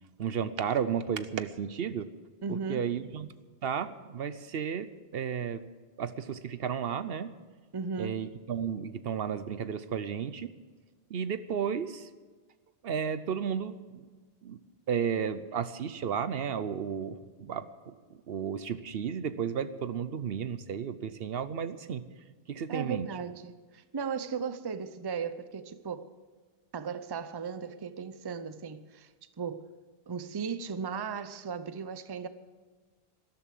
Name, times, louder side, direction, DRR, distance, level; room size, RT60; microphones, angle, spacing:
voice 1, 0.2-2.1 2.5-3.3 3.6-5.6 6.0-7.3 8.0-10.5 11.1-12.1 12.8-14.1 14.4-14.6 14.9-22.0 22.5-23.1, right 7 dB, 70° right, 0.9 m, -33 dB
voice 2, 2.4-2.9 7.7-8.3 22.7-26.1 26.7-29.1 29.4-29.7 30.1-32.3, right 6 dB, 30° right, 0.6 m, -36 dB
13.0 x 12.5 x 7.6 m
omnidirectional pair, 1.0 m